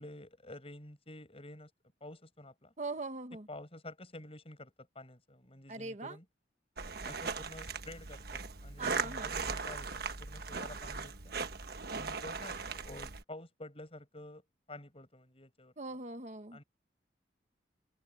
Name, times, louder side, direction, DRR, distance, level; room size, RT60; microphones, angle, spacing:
voice 1, 0.0-1.7 2.0-2.7 3.5-6.2 7.1-11.4 11.9-15.7 16.5-16.6, left 1 dB, 35° left, 7.8 m, -50 dB
voice 2, 2.8-3.5 5.7-6.2 8.8-9.3 15.8-16.6, right 3 dB, 40° right, 1.4 m, -41 dB
sound 1, 6.8-13.2, right 4 dB, 60° right, 1.3 m, -39 dB
open air
head